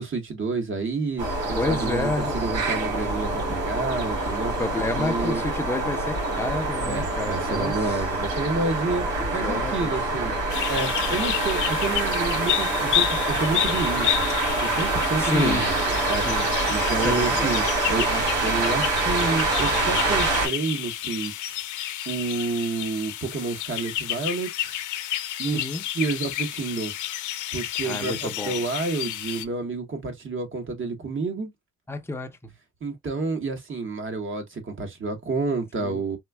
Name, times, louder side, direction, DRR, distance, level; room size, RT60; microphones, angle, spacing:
voice 1, 0.0-4.5 5.0-5.4 6.8-10.3 10.7-14.2 14.6-21.6 22.0-24.8 25.4-25.6 25.9-26.9 27.5-31.5 32.8-36.2, right 3 dB, 40° right, 1.4 m, -29 dB
sound 1, 1.2-20.5, right 2 dB, 80° right, 2.7 m, -26 dB
voice 2, 1.5-2.4 4.6-7.7 9.2-10.2 15.2-15.7 16.3-16.5 17.0-17.5 25.4-25.8 27.8-28.6 31.9-32.3 35.8-36.0, left 2 dB, 10° left, 0.7 m, -29 dB
sound 2, 10.5-29.4, left 13 dB, 80° left, 0.6 m, -30 dB
4.2 x 2.6 x 2.3 m
cardioid pair, 90°, 30 cm